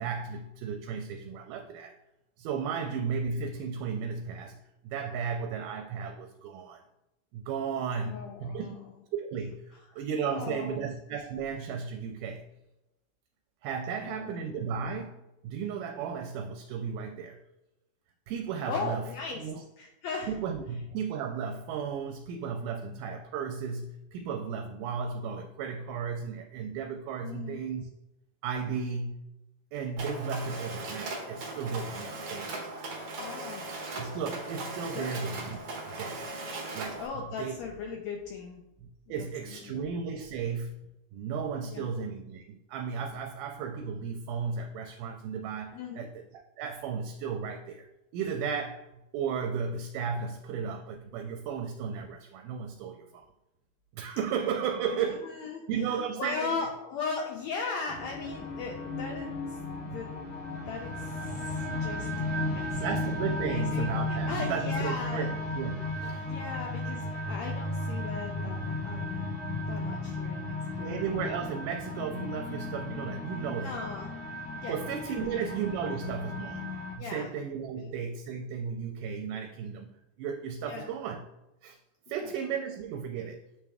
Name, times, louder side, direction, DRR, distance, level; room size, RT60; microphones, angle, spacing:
voice 1, 0.0-1.9 2.4-6.8 7.3-8.7 9.2-9.7 10.0-12.5 13.6-15.2 15.4-17.4 18.3-19.0 19.4-19.6 20.3-27.9 28.4-29.2 29.7-32.9 34.0-35.6 35.9-36.3 36.7-37.6 38.8-40.8 41.1-47.9 48.1-53.2 53.9-56.6 59.9-60.0 62.7-66.2 70.8-73.9 74.7-76.7 77.0-81.2 81.6-81.8 82.1-83.4, right 6 dB, 85° right, 4 dB, 2.1 m, -34 dB
voice 2, 8.0-8.9 9.7-10.9 14.0-14.4 18.7-19.5 19.8-20.4 27.2-27.6 28.7-29.0 33.2-33.7 34.9-35.3 37.0-38.6 39.1-39.8 41.6-41.9 45.7-46.1 54.9-60.1 60.7-62.9 63.4-65.3 66.0-69.3 69.6-70.9 73.6-74.1 74.5-74.8 75.2-75.4 75.8-75.9 77.0-77.3 77.8-77.9 80.6-80.9 82.1-82.3, left 5 dB, 80° left, 1 dB, 1.6 m, -38 dB
Mechanisms, 30.0-37.1, right 2 dB, 60° right, 1.6 m, -38 dB
sound 1, 57.9-77.0, left 2 dB, 55° left, 1.0 m, -35 dB
8.2 x 3.3 x 3.4 m, 0.93 s
omnidirectional pair, 3.7 m